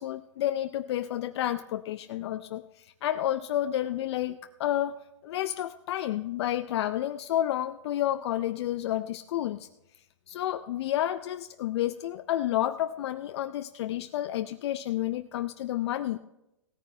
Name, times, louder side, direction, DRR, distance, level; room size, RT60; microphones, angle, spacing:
voice 1, 0.0-9.7 10.3-16.2, left 12 dB, 55° left, 9 dB, 0.5 m, -30 dB
17.5 x 9.6 x 3.3 m, 0.89 s
hypercardioid pair, 135°, 16 cm